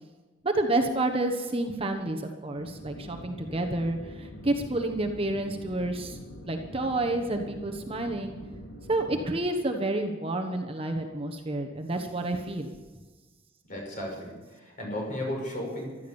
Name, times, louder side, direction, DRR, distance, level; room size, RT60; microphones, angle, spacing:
voice 1, 0.4-6.2 6.5-8.4 8.9-12.7, right 2 dB, 30° right, 4 dB, 1.2 m, -29 dB
sound 1, 2.6-9.3, equal, 70° left, 3.0 m, -44 dB
voice 2, 13.7-16.0, left 1 dB, 45° left, -1 dB, 5.8 m, -34 dB
15.0 x 12.5 x 7.1 m, 1.3 s
head